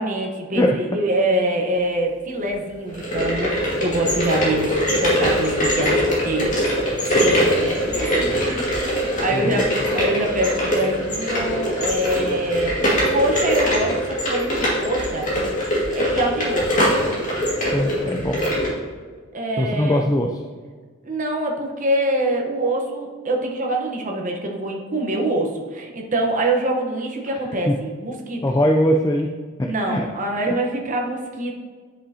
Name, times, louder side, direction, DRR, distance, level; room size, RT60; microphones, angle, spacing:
voice 1, 0.0-3.5 3.8-4.8 5.0-6.8 7.1-12.8 13.1-13.9 14.3-15.2 15.9-16.9 19.3-20.0 21.0-28.6 29.6-31.5, right 1 dB, 40° right, 1 dB, 1.0 m, -25 dB
sound 1, 2.9-18.7, equal, 35° left, 2.1 m, -22 dB
voice 2, 9.3-9.7 17.7-18.5 19.6-20.4 27.7-27.8 28.4-29.3 29.6-30.1, equal, 15° left, 2 dB, 0.3 m, -21 dB
10.0 x 5.5 x 2.8 m, 1.5 s
head